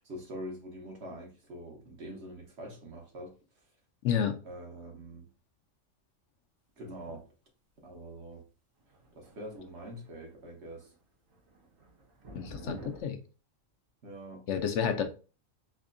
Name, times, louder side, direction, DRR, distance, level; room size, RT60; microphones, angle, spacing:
voice 1, 0.0-3.3 4.4-5.3 6.8-7.2 7.8-8.4 9.1-10.9 14.0-14.4, equal, 60° right, 1.3 m, -44 dB
voice 2, 4.0-4.4 12.3-13.2 14.5-15.0, left 8 dB, 70° left, 0.8 m, -30 dB
sound 1, 8.8-10.3 10.6-11.0 11.3-13.0, right 2 dB, 85° right, 1.6 m, -49 dB
4.2 x 2.7 x 2.5 m
omnidirectional pair, 1.3 m